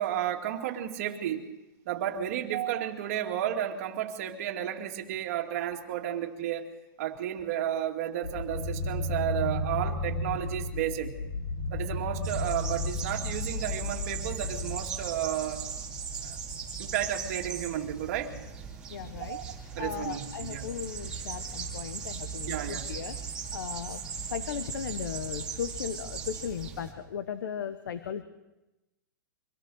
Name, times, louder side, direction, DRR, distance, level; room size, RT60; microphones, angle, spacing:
voice 1, 0.0-1.5 1.9-6.7 7.0-11.2 11.7-15.6 16.2-16.4 16.8-18.3 19.2-19.4 19.7-20.7 22.5-22.9, right 11 dB, 40° right, 2 dB, 2.3 m, -32 dB
sound 1, 8.2-14.8, left 2 dB, 80° left, 3.1 m, -33 dB
sound 2, 12.2-26.9, right 6 dB, 10° right, 2.5 m, -38 dB
voice 2, 18.9-19.4 19.8-23.2 23.5-24.0 24.3-28.2, left 8 dB, 65° left, 11 dB, 1.1 m, -36 dB
24.5 x 17.0 x 6.4 m, 1.0 s
hypercardioid pair, 170°, 11 cm